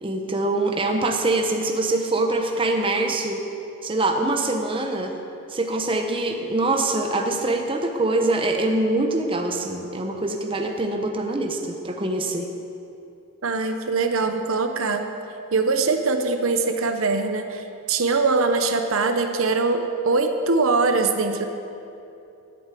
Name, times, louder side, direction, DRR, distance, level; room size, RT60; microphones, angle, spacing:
voice 1, 0.0-3.4 3.8-5.1 5.5-12.5, right 2 dB, 25° right, 3 dB, 0.9 m, -24 dB
voice 2, 13.4-15.1 15.5-21.4, right 3 dB, 65° right, 6 dB, 0.8 m, -22 dB
11.0 x 8.3 x 8.2 m, 2.8 s
head